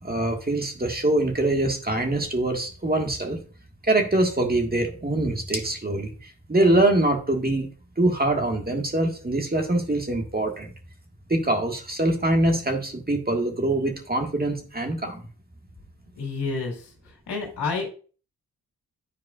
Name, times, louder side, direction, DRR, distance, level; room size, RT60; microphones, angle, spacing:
voice 1, 0.0-3.4 3.8-7.7 8.0-10.7 11.3-15.3, right 1 dB, 25° right, 3 dB, 1.6 m, -24 dB
voice 2, 16.2-16.9 17.3-17.8, left 4 dB, 85° left, 0 dB, 2.2 m, -29 dB
10.0 x 4.6 x 2.4 m, 0.39 s
supercardioid pair, 45°, 40 cm